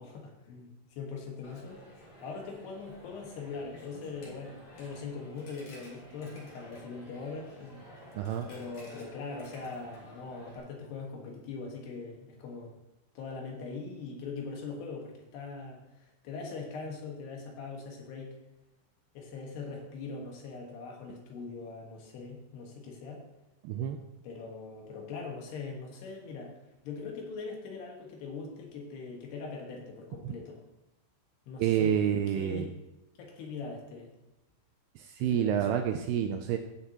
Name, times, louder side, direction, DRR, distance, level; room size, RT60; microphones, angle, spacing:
voice 1, 0.0-1.8 2.2-7.9 8.5-12.7 13.2-18.4 19.2-23.2 24.2-26.5 26.8-30.6 31.5-32.0 32.4-32.7 33.2-34.1 35.2-35.7, left 4 dB, 70° left, 0 dB, 3.5 m, -41 dB
Coin (dropping), 1.4-10.6, left 1 dB, 45° left, 3.2 m, -52 dB
voice 2, 8.1-8.5 23.6-24.0 30.2-30.3 31.6-32.7 35.0-36.6, right 9 dB, 85° right, 6 dB, 2.4 m, -28 dB
15.0 x 7.1 x 2.9 m, 0.97 s
omnidirectional pair, 5.1 m